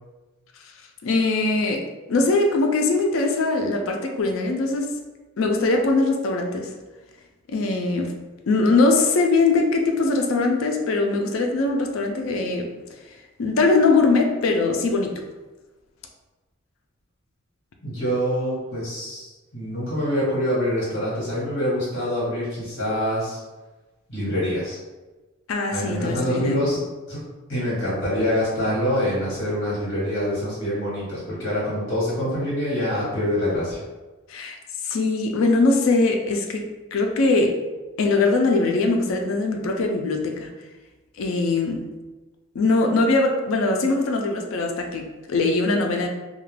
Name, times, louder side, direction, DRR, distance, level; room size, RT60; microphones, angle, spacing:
voice 1, 1.0-5.0 5.4-6.7 7.5-8.1 8.5-12.7 13.4-15.2 25.5-26.6 34.3-34.6 34.8-37.6 38.0-40.5 41.2-41.9 42.5-46.1, left 3 dB, 75° left, 4 dB, 0.4 m, -21 dB
voice 2, 17.8-23.4 24.1-24.8 25.7-26.8 27.1-27.2 27.5-33.8, equal, 55° left, -8 dB, 1.2 m, -25 dB
2.3 x 2.2 x 3.2 m, 1.2 s
head